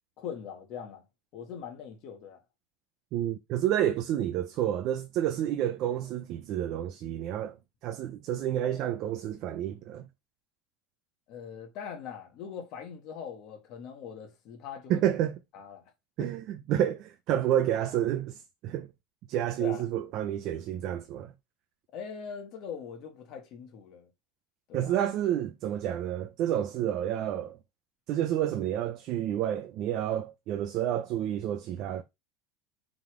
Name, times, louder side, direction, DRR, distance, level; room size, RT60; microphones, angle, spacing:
voice 1, 0.2-1.0 1.3-2.4 11.3-15.0 15.5-15.9 16.2-16.3 19.6-19.9 21.9-24.1 24.7-24.9, left 7 dB, 40° left, 1.7 m, -41 dB
voice 2, 3.1-7.6 7.8-10.1 14.9-15.4 16.2-18.9 19.3-21.3 24.7-27.6 28.1-32.0, right 11 dB, 40° right, 0.6 m, -29 dB
5.9 x 3.8 x 5.0 m
cardioid pair, 170°, 0 cm